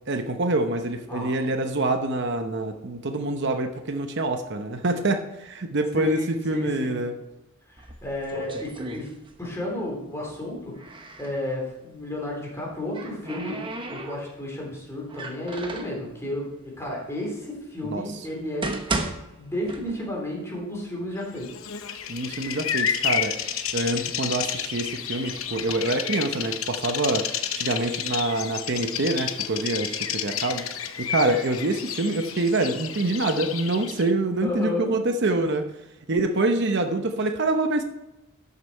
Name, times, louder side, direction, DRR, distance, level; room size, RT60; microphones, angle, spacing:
voice 1, 0.1-7.1 17.8-18.0 22.1-23.4 23.7-27.3 27.5-30.6 31.0-35.7 36.1-37.8, right 2 dB, 60° right, 6 dB, 0.8 m, -26 dB
voice 2, 5.9-7.0 7.7-9.1 9.4-10.9 11.2-13.6 13.9-18.8 19.1-21.5 33.9-34.0 34.4-34.9, left 1 dB, 15° left, -3 dB, 3.6 m, -32 dB
sound 1, 7.8-9.7 9.9-11.4 12.5-14.5 15.1-16.0 16.8-16.9 17.6-17.7 18.3-20.3 20.6-20.7 21.4-21.5 21.9-22.5 23.1-24.7 25.4-25.7, right 2 dB, 25° right, 1.0 m, -35 dB
Bird vocalization bird call bird song, 21.4-34.1, left 8 dB, 85° left, 0.8 m, -31 dB
12.5 x 6.8 x 4.5 m, 0.95 s
head